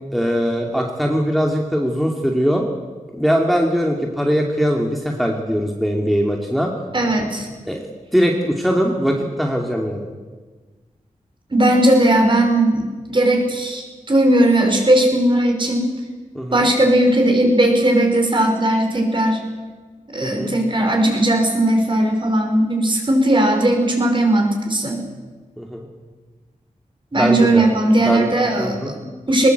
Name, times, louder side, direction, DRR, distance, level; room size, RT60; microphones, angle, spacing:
voice 1, 0.1-2.7 3.2-6.7 7.7-7.9 8.1-10.1 16.3-16.7 20.2-20.5 25.6-25.9 27.2-27.6 28.1-28.9, equal, ahead, 0 dB, 2.4 m, -21 dB
voice 2, 6.9-7.5 11.5-15.9 16.5-19.4 20.1-25.0 27.1-29.5, right 1 dB, 35° right, 2 dB, 5.4 m, -17 dB
20.5 x 20.0 x 8.1 m, 1.4 s
wide cardioid pair, 90°, 14 cm